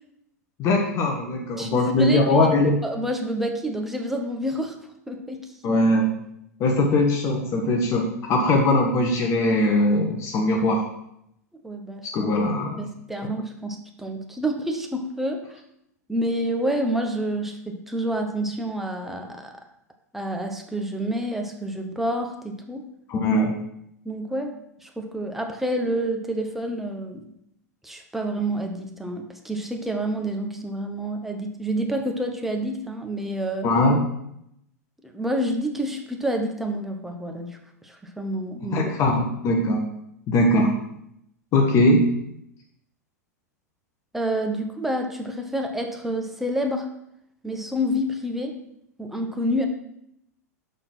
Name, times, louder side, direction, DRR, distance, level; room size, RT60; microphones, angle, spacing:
voice 1, 0.6-2.8 5.6-6.1 6.6-10.9 12.1-12.8 23.1-23.5 33.6-34.0 38.6-39.8 40.3-40.7 41.5-42.1, left 1 dB, 30° left, 2 dB, 1.0 m, -21 dB
voice 2, 1.6-2.5 2.8-4.8 5.1-5.4 11.6-12.3 12.8-15.6 16.1-19.5 20.1-22.8 24.0-24.5 24.8-27.3 27.8-33.7 35.0-37.6 37.8-38.8 44.1-46.9 47.4-48.5 49.0-49.7, right 1 dB, 5° right, 3 dB, 0.9 m, -28 dB
6.5 x 3.9 x 5.9 m, 0.77 s
figure-of-eight pair, 95°, 9 cm